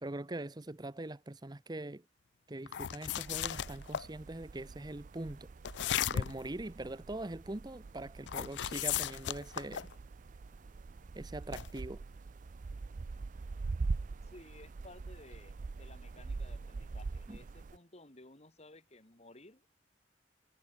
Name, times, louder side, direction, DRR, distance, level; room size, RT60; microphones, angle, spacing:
voice 1, 0.0-2.0 2.5-5.5 6.1-9.9 11.1-12.0 17.3-17.4, right 2 dB, 25° right, 0.8 m, -42 dB
sound 1, 2.7-4.1 5.6-6.5 8.3-9.9 11.5-11.8, left 10 dB, 70° left, 0.4 m, -35 dB
sound 2, 3.3-17.8, right 3 dB, 45° right, 0.4 m, -43 dB
voice 2, 14.2-19.7, left 2 dB, 35° left, 2.6 m, -56 dB
head